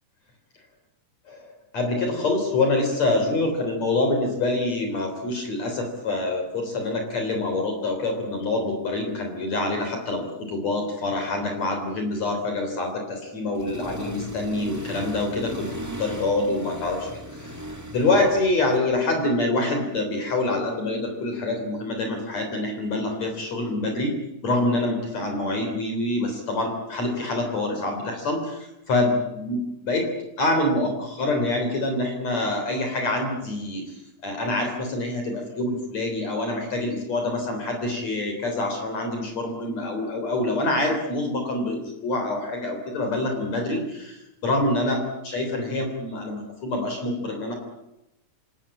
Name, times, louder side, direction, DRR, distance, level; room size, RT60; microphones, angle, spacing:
voice 1, 1.3-15.7 16.0-17.6 17.9-24.1 24.4-30.1 30.4-33.9 34.2-47.5, left 2 dB, 50° left, 4 dB, 4.6 m, -26 dB
Accelerating revving vroom, 13.6-18.8, equal, 15° right, 0.5 m, -37 dB
28.0 x 18.0 x 8.7 m, 0.91 s
omnidirectional pair, 3.9 m